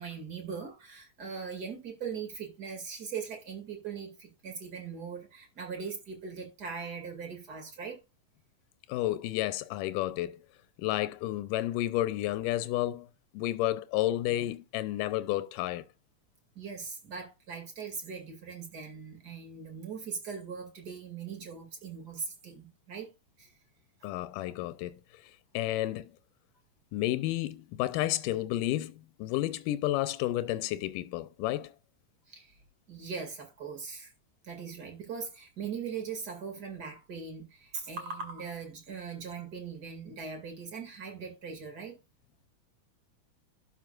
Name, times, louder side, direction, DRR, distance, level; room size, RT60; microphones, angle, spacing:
voice 1, 0.0-8.0 16.6-23.1 23.4-23.5 32.3-32.6 32.9-34.1 34.4-42.0, right 6 dB, 35° right, 2.3 m, -40 dB
voice 2, 8.9-10.4 10.8-13.1 13.3-15.9 24.0-26.1 26.9-31.7, left 15 dB, 90° left, 2.2 m, -31 dB
12.0 x 5.5 x 2.4 m
omnidirectional pair, 3.7 m